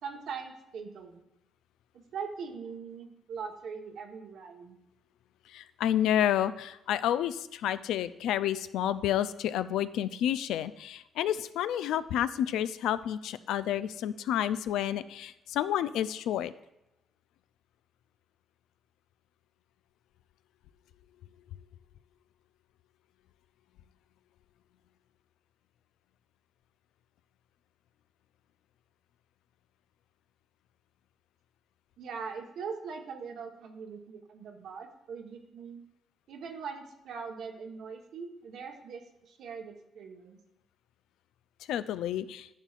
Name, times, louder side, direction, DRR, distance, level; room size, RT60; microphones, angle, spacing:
voice 1, 0.0-1.2 2.1-4.8 32.0-35.8 36.3-40.4, right 5 dB, 75° right, 3 dB, 1.1 m, -41 dB
voice 2, 5.5-16.5 41.7-42.5, left 11 dB, 85° left, 14 dB, 0.3 m, -30 dB
10.5 x 7.3 x 2.4 m, 0.90 s
cardioid pair, 90°, 0 cm